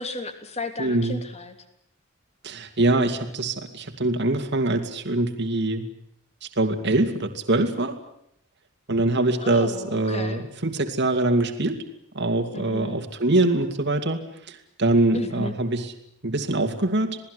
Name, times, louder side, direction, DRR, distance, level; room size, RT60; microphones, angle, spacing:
voice 1, 0.0-1.5 9.4-10.4 12.5-13.0 15.1-15.6, left 2 dB, 30° left, 7 dB, 3.2 m, -34 dB
voice 2, 0.8-1.2 2.4-5.9 6.4-8.0 8.9-11.8 12.1-14.2 14.5-15.9 16.2-17.2, right 2 dB, 50° right, 5 dB, 2.6 m, -23 dB
27.5 x 19.0 x 8.1 m, 0.71 s
head